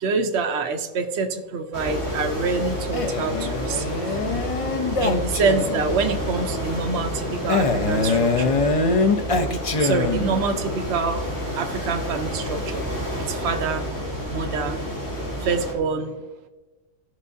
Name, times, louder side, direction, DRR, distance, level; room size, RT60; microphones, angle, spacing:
voice 1, 0.0-3.9 5.0-8.6 9.5-11.2 11.6-12.8 13.2-13.8 14.3-14.8 15.4-16.2, right 4 dB, 65° right, 4 dB, 1.0 m, -26 dB
sound 1, 1.7-15.7, equal, 70° left, 2.8 m, -30 dB
Male speech man speaking, 2.9-5.9 7.5-10.5, left 3 dB, 45° left, 0.4 m, -23 dB
15.5 x 5.5 x 2.7 m, 1.2 s
omnidirectional pair, 1.3 m